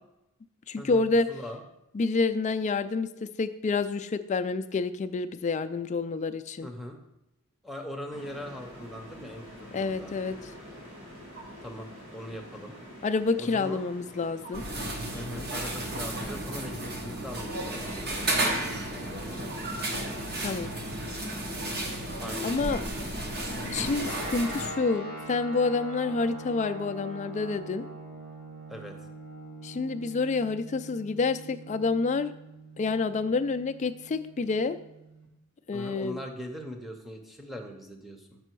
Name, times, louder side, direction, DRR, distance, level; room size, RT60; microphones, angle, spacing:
voice 1, 0.7-1.3 1.9-6.7 9.7-10.4 13.0-14.6 20.4-20.7 22.4-22.8 23.7-27.9 29.6-32.3 32.8-34.8 35.7-36.2, left 4 dB, 30° left, 10 dB, 0.3 m, -28 dB
voice 2, 1.3-1.6 6.6-7.0 7.6-10.1 11.6-12.8 13.4-13.9 15.1-19.4 22.2-22.6 28.7-29.0 35.7-38.4, equal, ahead, 1 dB, 0.8 m, -41 dB
sound 1, 8.1-21.6, equal, 60° right, 2.3 m, -47 dB
sound 2, 14.5-24.7, right 1 dB, 45° right, 1.1 m, -33 dB
sound 3, 24.1-35.3, right 1 dB, 80° right, 2.4 m, -43 dB
6.8 x 5.4 x 4.6 m, 0.92 s
head